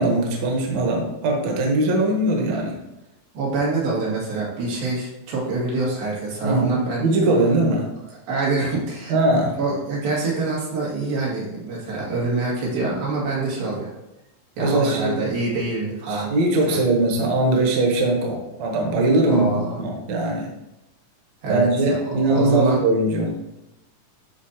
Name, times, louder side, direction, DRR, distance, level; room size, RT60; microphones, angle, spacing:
voice 1, 0.0-2.7 6.4-7.9 9.1-9.5 14.6-15.2 16.1-20.5 21.5-23.4, right 2 dB, 60° right, 0 dB, 2.1 m, -21 dB
voice 2, 3.3-7.0 8.1-9.1 9.6-13.9 14.6-16.3 16.7-16.8 19.3-19.8 21.4-22.8, right 3 dB, 85° right, -5 dB, 4.0 m, -26 dB
11.5 x 4.1 x 2.9 m, 0.95 s
omnidirectional pair, 4.2 m